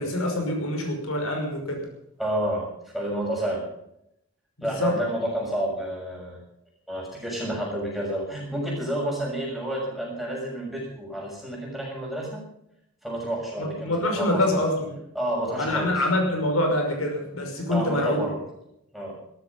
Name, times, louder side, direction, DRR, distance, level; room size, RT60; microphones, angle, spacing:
voice 1, 0.0-1.8 4.6-5.0 13.6-15.0 15.6-18.3, left 1 dB, 85° left, 2 dB, 5.7 m, -25 dB
voice 2, 2.2-3.7 4.6-6.4 6.9-12.4 13.0-14.6 15.1-16.0 17.7-18.4 18.9-19.2, right 1 dB, ahead, -3 dB, 6.5 m, -30 dB
17.5 x 13.5 x 5.5 m, 0.78 s
head